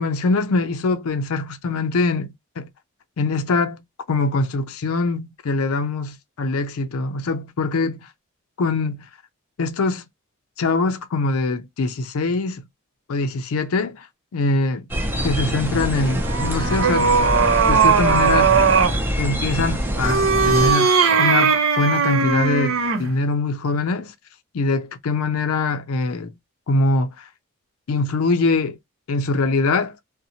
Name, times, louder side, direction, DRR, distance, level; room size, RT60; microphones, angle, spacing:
voice 1, 0.0-2.7 3.2-3.8 4.1-8.1 8.6-9.1 9.6-10.1 10.6-12.6 13.1-14.1 14.3-14.9 15.2-17.1 17.7-18.6 19.2-24.1 24.5-26.4 26.7-27.3 27.9-28.8 29.1-30.0, left 3 dB, 85° left, 0.5 m, -23 dB
sound 1, 14.9-20.7, equal, 10° right, 0.4 m, -25 dB
sound 2, 16.0-19.0 19.9-23.1, right 5 dB, 70° right, 0.7 m, -18 dB
2.6 x 2.1 x 2.7 m
head